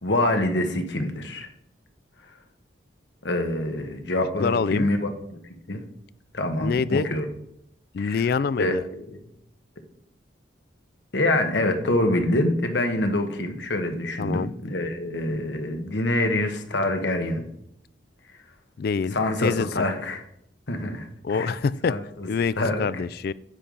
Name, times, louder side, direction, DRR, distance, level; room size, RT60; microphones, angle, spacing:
voice 1, 0.0-1.5 3.2-5.4 5.7-5.8 6.3-7.2 8.0-8.2 8.6-9.2 11.1-17.4 19.1-20.2 20.7-21.5 21.8-22.3 22.6-23.0, left 1 dB, 70° left, 5 dB, 1.2 m, -26 dB
voice 2, 4.4-4.9 6.6-7.1 7.9-8.7 14.2-14.5 18.8-19.7 21.2-21.9 22.3-23.3, left 5 dB, 55° left, 18 dB, 0.3 m, -25 dB
9.9 x 7.1 x 3.9 m, 0.76 s
head